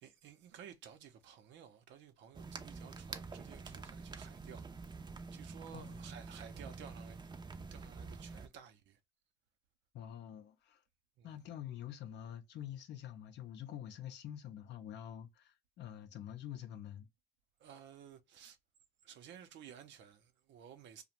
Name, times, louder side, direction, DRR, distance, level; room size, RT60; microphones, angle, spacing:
voice 1, 0.0-4.8 5.3-7.2 7.7-9.0 11.2-11.4 17.6-18.6 19.0-21.0, right 8 dB, 85° right, 0.6 m, -54 dB
sound 1, 2.3-8.5, right 4 dB, 25° right, 0.4 m, -47 dB
voice 2, 9.9-10.8 11.2-17.1, left 10 dB, 75° left, 0.5 m, -47 dB
2.5 x 2.1 x 2.9 m
cardioid pair, 80°, 18 cm